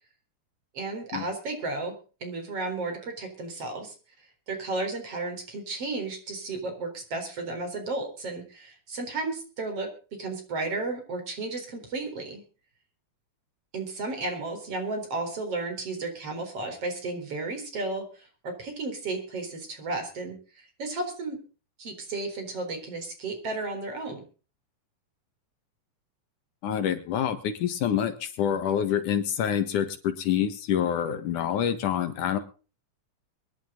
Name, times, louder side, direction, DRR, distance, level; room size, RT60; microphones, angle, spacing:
voice 1, 0.7-3.9 4.5-9.9 10.2-12.4 13.7-21.4 21.8-24.2, right 3 dB, 50° right, 5 dB, 5.1 m, -33 dB
voice 2, 26.6-32.4, left 9 dB, 75° left, 9 dB, 3.1 m, -27 dB
23.5 x 11.0 x 3.9 m, 0.37 s
omnidirectional pair, 3.6 m